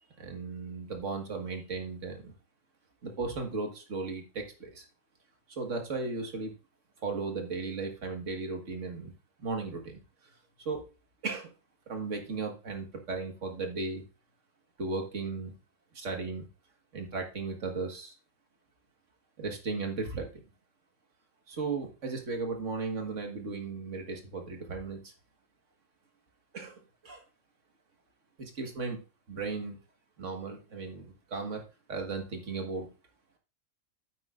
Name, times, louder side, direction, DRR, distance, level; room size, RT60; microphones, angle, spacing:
voice 1, 0.2-2.3 3.0-4.9 5.5-6.5 7.0-9.1 9.4-10.0 10.6-10.9 11.2-11.5 11.9-14.0 14.8-15.5 15.9-16.5 16.9-18.1 19.4-20.3 21.5-25.1 26.5-27.2 28.4-29.0 29.3-29.8 30.2-31.6 31.9-32.9, right 4 dB, 60° right, 3 dB, 1.9 m, -36 dB
9.3 x 8.3 x 2.5 m, 0.31 s
omnidirectional pair, 1.4 m